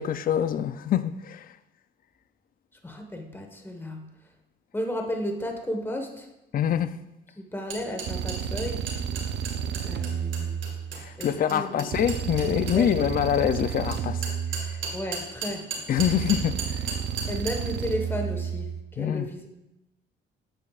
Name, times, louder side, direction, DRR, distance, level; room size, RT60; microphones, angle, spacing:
voice 1, 0.0-1.5 6.5-6.9 11.0-14.3 15.9-16.6 19.0-19.3, left 9 dB, 45° left, 0.4 m, -25 dB
voice 2, 2.8-4.0 4.7-6.3 7.4-8.8 9.8-10.6 11.2-11.9 12.7-12.9 14.9-15.7 17.2-19.5, equal, 10° left, 1.3 m, -33 dB
sound 1, 7.7-12.8 13.9-17.5, right 5 dB, 80° right, 1.9 m, -34 dB
sound 2, 8.0-11.2 11.9-15.2 16.0-18.8, right 8 dB, 60° right, 0.5 m, -31 dB
9.0 x 7.5 x 2.4 m
cardioid pair, 90°, 20 cm